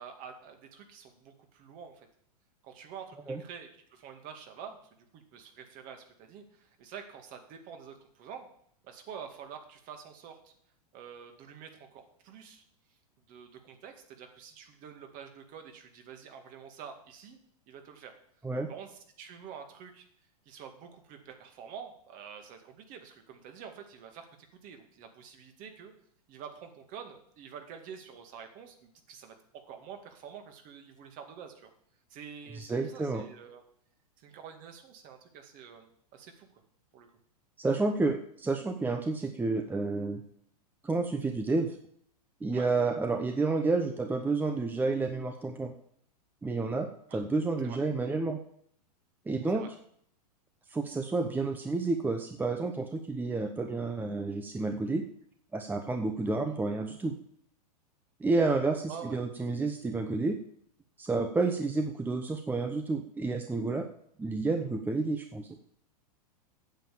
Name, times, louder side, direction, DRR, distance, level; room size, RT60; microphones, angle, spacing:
voice 1, 0.0-2.1 2.6-8.5 8.8-10.5 10.9-12.6 13.3-17.4 17.7-18.1 18.7-20.0 20.5-25.9 26.3-31.7 32.1-33.6 34.2-36.6 36.9-37.1 42.5-42.7 47.1-47.2 47.6-47.8 49.5-49.7 58.9-59.2, right 7 dB, 40° right, 5 dB, 2.1 m, -47 dB
voice 2, 32.5-33.2 37.6-40.2 40.8-41.8 42.4-45.7 46.4-46.9 47.1-48.4 49.3-49.7 50.7-55.0 55.5-57.1 58.2-60.4 61.0-63.8 64.2-65.6, right 3 dB, 10° right, 6 dB, 0.8 m, -30 dB
8.9 x 7.5 x 7.1 m, 0.65 s
hypercardioid pair, 110°, 20 cm